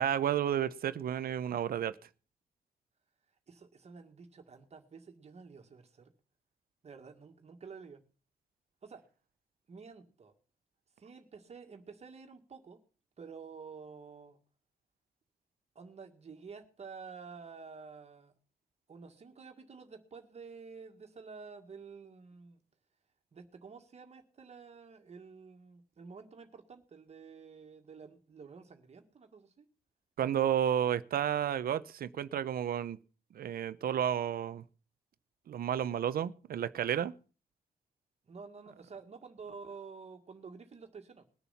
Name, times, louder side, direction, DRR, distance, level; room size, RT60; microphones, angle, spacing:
voice 1, 0.0-2.0 30.2-33.0 33.3-34.6 35.5-37.1, right 9 dB, 80° right, 0.7 m, -31 dB
voice 2, 3.5-6.1 6.8-8.0 8.8-9.0 9.7-10.3 11.0-12.8 13.2-14.4 15.8-18.3 18.9-22.6 23.3-29.7 38.3-41.2, right 5 dB, 45° right, 1.9 m, -50 dB
21.0 x 7.1 x 5.8 m
wide cardioid pair, 150°, 15 cm